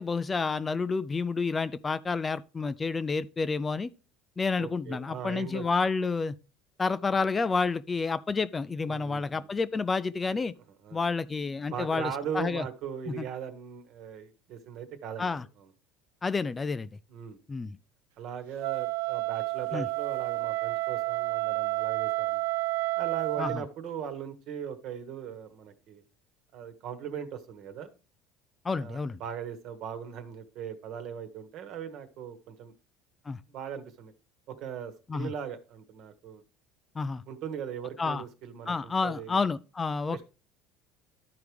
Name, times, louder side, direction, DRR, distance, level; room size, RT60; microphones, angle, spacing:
voice 1, 0.0-3.9 4.4-6.4 6.8-10.5 10.9-12.6 13.2-13.3 15.2-15.4 16.2-16.9 17.5-17.8 19.7-19.9 23.4-23.6 28.6-29.2 33.3-33.4 35.1-35.3 37.0-37.2 38.0-38.2 38.7-40.2, left 4 dB, 20° left, 0.3 m, -29 dB
voice 2, 4.6-5.7 8.9-9.5 10.8-11.0 11.7-15.3 15.6-15.7 17.1-17.4 18.2-22.4 23.0-26.0 26.5-27.9 28.8-32.7 33.5-34.1 34.5-36.4 37.3-39.5 40.1-40.2, right 8 dB, 60° right, 1.3 m, -39 dB
Wind instrument woodwind instrument, 18.6-23.6, right 18 dB, 85° right, 0.3 m, -30 dB
12.5 x 4.7 x 3.4 m
supercardioid pair, 120°, 0 cm